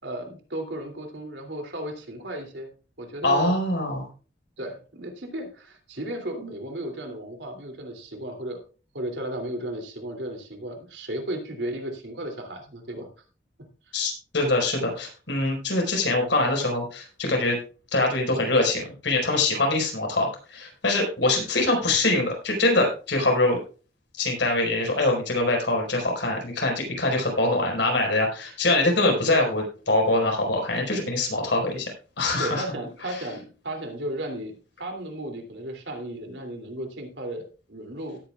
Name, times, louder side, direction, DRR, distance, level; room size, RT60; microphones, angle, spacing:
voice 1, 0.0-2.7 3.0-3.5 4.6-8.6 8.9-13.1 32.4-38.2, right 1 dB, 80° right, 3 dB, 2.9 m, -34 dB
voice 2, 3.2-4.1 13.9-17.6 17.9-23.6 24.2-31.9 32.2-32.6 33.1-33.2, left 2 dB, 90° left, 1 dB, 4.8 m, -24 dB
17.5 x 9.2 x 2.4 m, 0.36 s
head